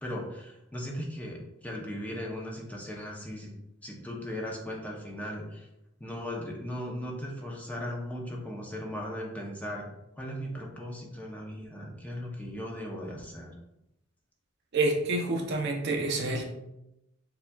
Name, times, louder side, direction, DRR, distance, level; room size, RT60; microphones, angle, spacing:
voice 1, 0.0-3.5 3.8-5.7 6.0-9.9 10.2-13.5, equal, 10° left, -2 dB, 0.6 m, -37 dB
voice 2, 14.7-16.4, right 2 dB, 55° right, 2 dB, 0.6 m, -28 dB
6.7 x 2.4 x 2.3 m, 0.88 s
head